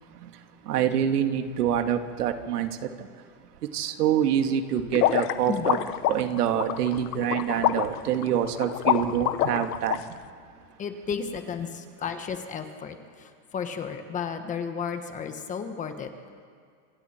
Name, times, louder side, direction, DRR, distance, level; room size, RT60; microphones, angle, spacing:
voice 1, 0.7-2.7 3.7-5.8 6.1-10.0, right 9 dB, 85° right, 2.2 m, -26 dB
sound 1, 4.9-10.0, left 13 dB, 75° left, 1.2 m, -26 dB
voice 2, 10.8-16.1, left 6 dB, 15° left, 1.2 m, -33 dB
27.5 x 26.5 x 4.5 m
supercardioid pair, 160°, 45 cm